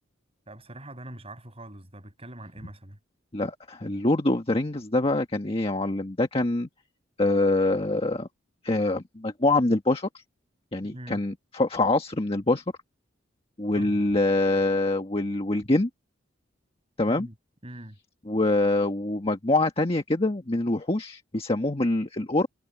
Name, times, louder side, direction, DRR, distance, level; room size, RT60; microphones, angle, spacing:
voice 1, 0.5-3.0 10.9-11.2 13.7-14.0 17.1-17.3 17.6-18.0, right 1 dB, 30° right, 5.9 m, -43 dB
voice 2, 3.3-6.7 7.2-8.3 8.6-10.2 10.7-12.6 13.6-15.9 17.0-17.3 18.3-22.5, left 2 dB, 30° left, 1.5 m, -25 dB
head